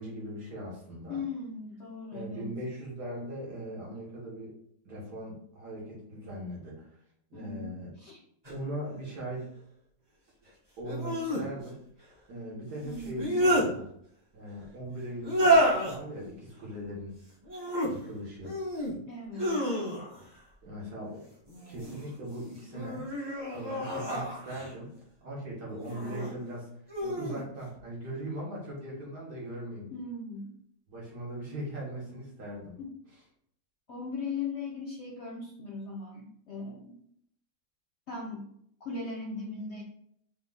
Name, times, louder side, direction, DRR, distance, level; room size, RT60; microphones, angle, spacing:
voice 1, 0.0-1.3 2.1-4.6 4.9-7.0 7.3-7.9 8.5-9.5 10.8-13.9 14.3-17.1 17.9-18.6 20.6-21.3 21.7-23.0 23.5-24.9 25.2-26.7 27.0-29.9 30.9-32.8 33.0-33.3, right 1 dB, 70° right, -4 dB, 2.1 m, -40 dB
voice 2, 1.1-2.5 7.3-8.2 12.8-13.4 19.1-19.7 29.9-30.5 32.8-32.9 33.9-37.0 38.1-38.5 38.8-39.8, left 3 dB, 55° left, -2 dB, 0.7 m, -38 dB
sound 1, 8.4-8.5 10.8-11.4 13.0-13.7 15.2-16.0 17.4-17.9 18.4-18.9 19.3-20.2 21.5-22.1 22.7-24.7 25.8-26.3 26.9-27.4, right 1 dB, 15° right, 0.9 m, -29 dB
4.7 x 2.5 x 3.8 m, 0.70 s
omnidirectional pair, 1.9 m